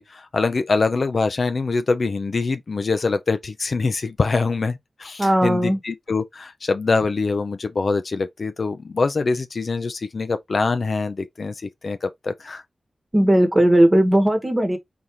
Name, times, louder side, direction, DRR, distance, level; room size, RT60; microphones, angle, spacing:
voice 1, 0.0-12.6, left 4 dB, 55° left, 0.5 m, -24 dB
voice 2, 5.2-5.8 13.1-14.8, right 1 dB, 20° right, 1.2 m, -17 dB
4.0 x 3.5 x 3.0 m
wide cardioid pair, 95°, 0 cm